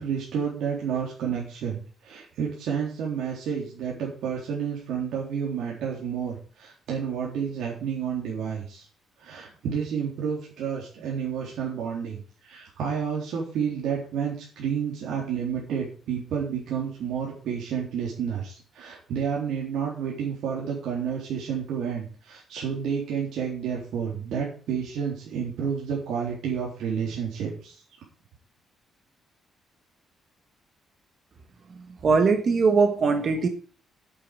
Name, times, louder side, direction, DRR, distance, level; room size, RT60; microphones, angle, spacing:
voice 1, 0.0-8.9 9.2-27.8, right 7 dB, 80° right, -4 dB, 3.9 m, -30 dB
voice 2, 32.0-33.5, right 4 dB, 40° right, 6 dB, 1.4 m, -20 dB
8.9 x 8.7 x 7.5 m, 0.41 s
cardioid pair, 150°, 0 cm